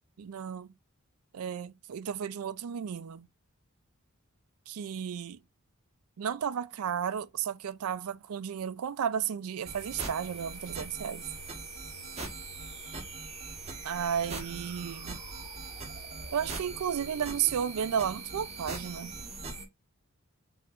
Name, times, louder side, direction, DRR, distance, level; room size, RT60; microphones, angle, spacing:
voice 1, 0.2-0.7 1.3-3.3 4.7-5.4 6.2-11.3 13.8-15.2 16.3-19.1, right 8 dB, 80° right, 0.4 m, -33 dB
sound 1, 9.7-19.6, right 3 dB, 30° right, 1.2 m, -41 dB
5.6 x 2.9 x 2.4 m
head